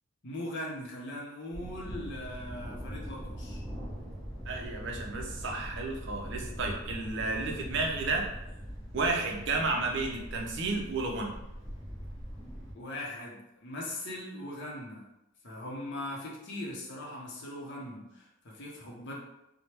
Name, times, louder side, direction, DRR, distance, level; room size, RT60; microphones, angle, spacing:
voice 1, 0.2-3.6 12.7-15.1 15.4-19.1, left 1 dB, 50° left, -3 dB, 0.7 m, -40 dB
Thunder, 1.5-12.7, equal, ahead, 0.9 m, -41 dB
voice 2, 4.5-8.3 8.9-11.3, right 3 dB, 55° right, 1 dB, 0.5 m, -32 dB
3.2 x 2.1 x 2.9 m, 0.87 s
head